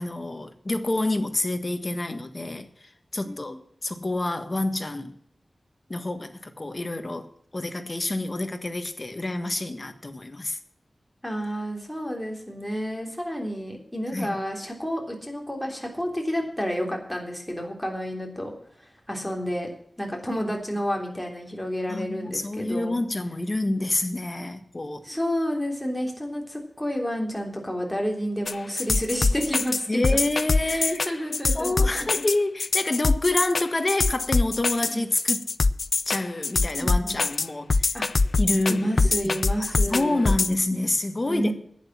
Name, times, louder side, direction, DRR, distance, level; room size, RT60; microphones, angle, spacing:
voice 1, 0.0-2.7 3.1-5.1 5.9-10.6 14.1-14.4 20.4-20.6 21.9-25.1 29.9-31.0 31.5-35.5 36.1-37.9 38.4-38.9 39.2-41.5, left 2 dB, 35° left, 1.5 m, -28 dB
voice 2, 3.2-3.6 11.2-19.7 20.0-23.0 25.0-30.0 30.6-32.2 34.9-35.0 36.8-37.2 37.9-38.1 38.7-40.3 41.3-41.5, equal, 5° left, 3.6 m, -30 dB
sound 1, 28.5-40.5, left 3 dB, 65° left, 0.5 m, -23 dB
11.0 x 9.3 x 7.5 m
wide cardioid pair, 85°, 0 cm